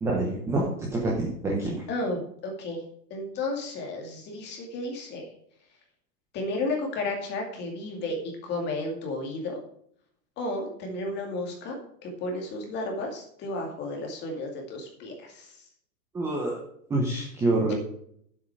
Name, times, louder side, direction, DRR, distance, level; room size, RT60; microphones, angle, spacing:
voice 1, 0.0-1.8 16.1-16.6 16.9-17.7, right 2 dB, 5° right, -2 dB, 0.8 m, -27 dB
voice 2, 1.9-2.8 3.1-5.3 6.3-9.6 10.4-15.7, left 2 dB, 20° left, 2 dB, 2.2 m, -33 dB
10.5 x 7.7 x 4.8 m, 0.68 s
supercardioid pair, 170°, 49 cm